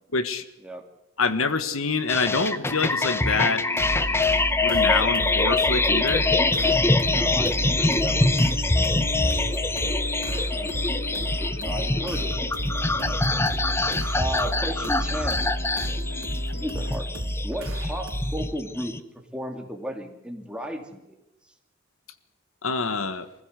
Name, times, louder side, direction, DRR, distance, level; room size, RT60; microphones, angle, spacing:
voice 1, 0.1-0.4 1.2-3.7 4.6-6.3 22.6-23.3, left 4 dB, 80° left, 12 dB, 1.5 m, -26 dB
sound 1, 2.1-19.0, left 2 dB, 10° left, 0.8 m, -25 dB
sound 2, 2.4-17.0, left 3 dB, 50° left, 1.9 m, -40 dB
sound 3, 3.8-18.5, equal, 75° right, 4.1 m, -31 dB
voice 2, 7.0-10.8 11.1-13.8 14.1-15.5 16.5-17.1 17.4-21.2, right 1 dB, 5° right, 3 dB, 2.8 m, -35 dB
24.5 x 15.5 x 8.2 m, 0.91 s
head